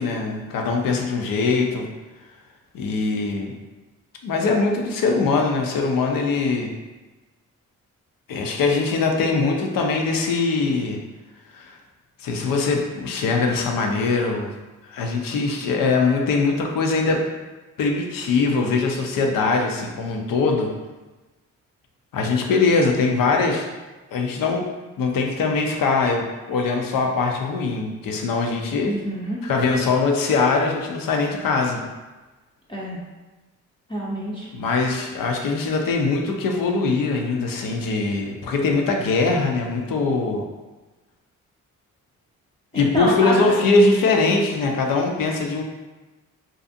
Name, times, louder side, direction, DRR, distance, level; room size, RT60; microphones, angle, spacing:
voice 1, 0.0-1.9 2.7-3.5 4.2-6.7 8.3-11.0 11.5-11.8 12.2-14.5 14.9-17.3 17.8-20.7 22.1-23.7 24.1-24.7 25.0-28.9 29.4-31.8 34.5-40.4 42.7-45.6, left 3 dB, 65° left, 2 dB, 0.6 m, -22 dB
voice 2, 28.8-29.4 32.7-33.0 33.9-34.5 42.7-43.3, equal, 15° left, -6 dB, 0.6 m, -27 dB
2.5 x 2.3 x 2.6 m, 1.2 s
supercardioid pair, 50°, 36 cm